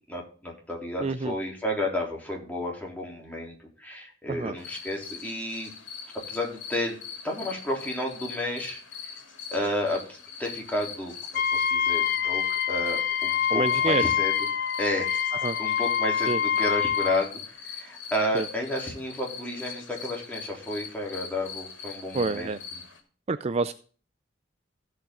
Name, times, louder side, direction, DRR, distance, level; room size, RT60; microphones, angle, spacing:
voice 1, 0.1-3.5 3.8-5.7 6.3-7.0 7.2-8.8 9.5-11.1 11.5-14.3 14.8-15.2 15.6-17.4 17.7-22.8, left 1 dB, 10° left, -2 dB, 3.7 m, -31 dB
voice 2, 1.0-1.3 4.3-4.6 13.5-14.0 15.3-15.6 16.3-16.4 18.3-18.5 22.1-22.6 23.3-23.7, right 3 dB, 35° right, 11 dB, 0.4 m, -27 dB
sound 1, 4.6-23.0, left 6 dB, 85° left, 2.8 m, -42 dB
Wind instrument woodwind instrument, 11.3-17.3, left 8 dB, 55° left, 0.6 m, -26 dB
16.5 x 5.8 x 3.8 m, 0.41 s
head